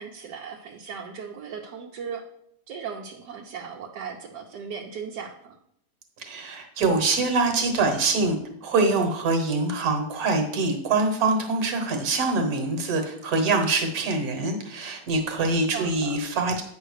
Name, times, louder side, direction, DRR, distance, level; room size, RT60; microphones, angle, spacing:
voice 1, 0.0-2.2 2.7-5.6 15.7-16.2, right 6 dB, 80° right, 0 dB, 1.4 m, -37 dB
voice 2, 6.2-16.6, right 3 dB, 65° right, 4 dB, 1.6 m, -24 dB
8.9 x 3.3 x 6.4 m, 0.74 s
omnidirectional pair, 1.8 m